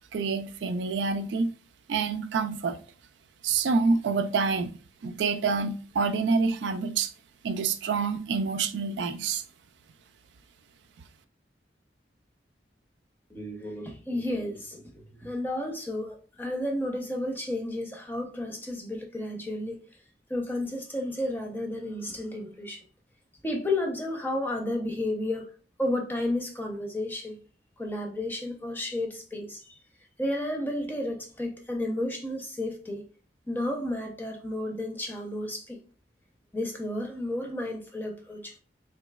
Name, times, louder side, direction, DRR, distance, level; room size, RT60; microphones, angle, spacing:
voice 1, 0.1-1.5 1.9-2.8 3.4-4.8 5.0-7.1 7.4-9.4, right 4 dB, 85° right, 0.4 m, -27 dB
voice 2, 13.3-14.8 15.2-19.8 20.3-22.8 23.4-25.5 25.8-27.4 27.8-29.8 30.2-33.0 33.5-35.8 36.5-38.5, left 1 dB, 10° left, 0.6 m, -32 dB
4.0 x 3.0 x 2.2 m
head